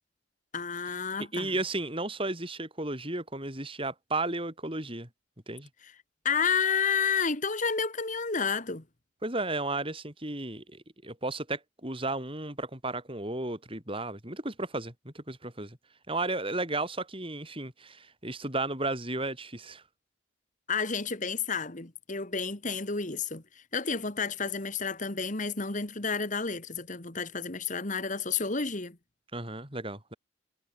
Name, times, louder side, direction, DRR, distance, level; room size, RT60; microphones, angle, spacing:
voice 1, 0.5-1.5 6.3-8.8 20.7-23.4 23.7-29.0, left 5 dB, 40° left, 1.8 m, -30 dB
voice 2, 1.3-5.1 5.5-5.7 9.2-15.8 16.1-19.8 29.3-30.1, right 2 dB, 25° right, 6.4 m, -34 dB
head